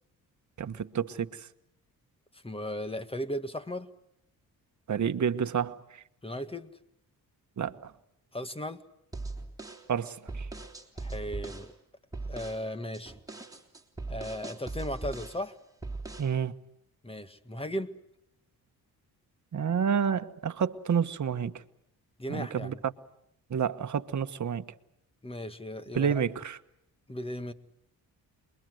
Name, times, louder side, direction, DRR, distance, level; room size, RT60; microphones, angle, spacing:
voice 1, 0.6-1.5 4.9-6.0 7.6-7.9 9.9-10.5 16.2-16.5 19.5-21.5 22.3-22.7 23.5-24.6 25.9-26.6, right 7 dB, 50° right, 1.4 m, -29 dB
voice 2, 2.3-3.9 6.2-6.7 8.3-8.8 11.0-11.7 12.3-13.2 14.1-15.6 17.0-18.0 22.2-22.8 25.2-26.2 27.1-27.5, equal, 15° left, 1.8 m, -36 dB
sound 1, 9.1-11.7 12.1-12.6 12.9-15.4 15.8-16.3, right 3 dB, 10° right, 3.6 m, -39 dB
28.5 x 22.5 x 8.0 m
cardioid pair, 70°, 38 cm